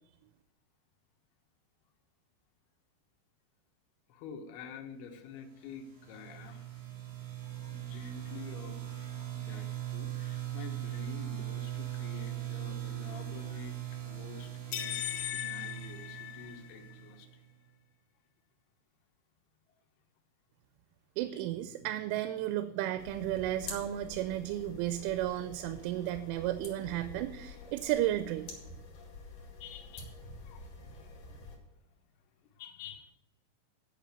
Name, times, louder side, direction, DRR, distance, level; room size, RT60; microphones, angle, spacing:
voice 1, 4.1-6.8 7.4-13.8 14.0-17.4 21.3-21.4 29.6-31.8 32.4-33.1, left 6 dB, 70° left, 4 dB, 2.5 m, -49 dB
sound 1, 5.6-17.3, right 14 dB, 55° right, 1.8 m, -40 dB
sound 2, 14.7-16.9, left 13 dB, 85° left, 3.4 m, -38 dB
voice 2, 21.2-28.6, right 13 dB, 90° right, 11 dB, 3.0 m, -33 dB
sound 3, 23.0-31.6, left 3 dB, 55° left, 2.4 m, -48 dB
10.0 x 5.6 x 6.7 m, 0.94 s
omnidirectional pair, 5.5 m